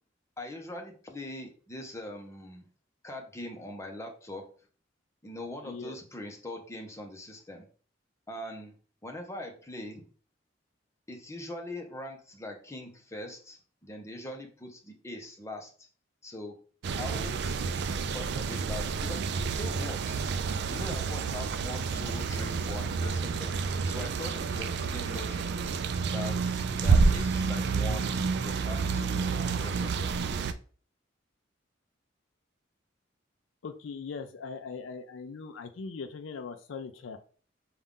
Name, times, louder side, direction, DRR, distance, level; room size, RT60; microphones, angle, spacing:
voice 1, 0.4-2.7 3.0-4.5 5.2-7.7 8.3-8.7 9.0-10.0 11.1-15.9 16.2-16.6 17.0-17.6 18.1-20.2 20.7-23.6 23.9-25.6 26.1-28.1 28.4-30.1, left 1 dB, 15° left, 2 dB, 0.7 m, -42 dB
voice 2, 5.6-6.0 33.6-37.2, left 5 dB, 80° left, 7 dB, 0.4 m, -40 dB
sound 1, 16.8-30.5, right 4 dB, 60° right, 0.4 m, -29 dB
5.3 x 2.4 x 3.6 m, 0.41 s
head